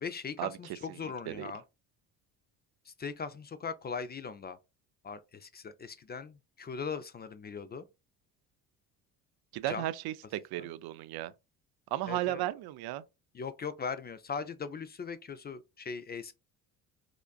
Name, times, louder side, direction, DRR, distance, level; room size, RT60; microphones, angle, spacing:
voice 1, 0.0-1.6 2.9-4.6 5.0-7.9 9.7-9.8 10.6-10.7 12.1-12.4 13.3-16.3, left 5 dB, 25° left, 0.4 m, -39 dB
voice 2, 0.9-1.5 9.5-11.3 11.9-13.0, right 14 dB, 55° right, 0.5 m, -35 dB
4.9 x 2.4 x 2.3 m
hypercardioid pair, 65°, 46 cm